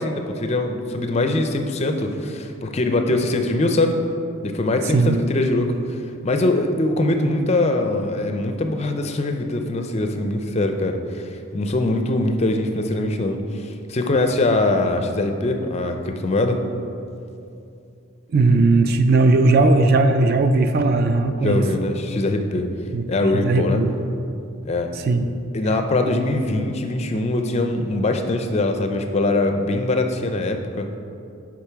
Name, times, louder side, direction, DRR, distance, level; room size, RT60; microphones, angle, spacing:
voice 1, 0.0-4.0 4.4-16.6 21.4-22.7 23.1-23.8 24.6-24.9 25.5-30.9, left 2 dB, 30° left, 5 dB, 0.4 m, -22 dB
voice 2, 18.3-21.6 22.9-23.1 23.3-23.9 25.0-25.2, right 3 dB, 45° right, 8 dB, 0.3 m, -17 dB
6.8 x 5.0 x 4.6 m, 2.6 s
head